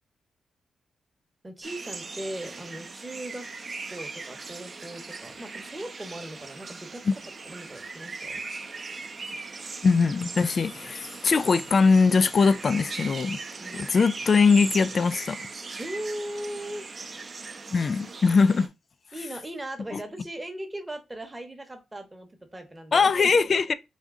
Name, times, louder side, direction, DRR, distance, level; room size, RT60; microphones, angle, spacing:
voice 1, 1.4-3.5 3.9-7.0 7.4-8.4 13.6-13.9 15.8-16.9 19.1-23.4, right 1 dB, 15° right, 0.9 m, -38 dB
sound 1, 1.6-18.7, right 4 dB, 40° right, 0.5 m, -39 dB
voice 2, 9.8-13.4 13.7-15.4 17.7-18.7 19.9-20.0 22.9-23.7, left 4 dB, 45° left, 0.3 m, -21 dB
3.5 x 2.7 x 3.6 m
cardioid pair, 100°, 0 cm